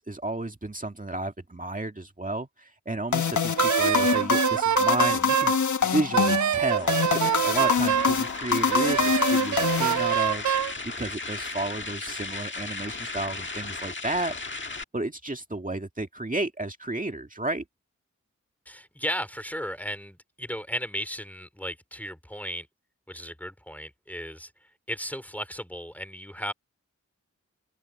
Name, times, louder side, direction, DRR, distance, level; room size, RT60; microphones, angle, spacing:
voice 1, 0.0-5.5 5.8-14.6 14.9-17.6, right 2 dB, 30° right, 2.0 m, -32 dB
sound 1, 3.1-10.5, left 6 dB, 85° left, 1.4 m, -25 dB
Wind instrument woodwind instrument, 3.6-5.6 6.1-8.2 8.7-10.7, right 10 dB, 75° right, 0.5 m, -25 dB
sound 2, 6.7-14.8, left 3 dB, 40° left, 1.6 m, -36 dB
voice 2, 18.7-22.7 23.1-24.5 24.9-26.5, equal, 5° left, 2.6 m, -35 dB
cardioid pair, 50°, 29 cm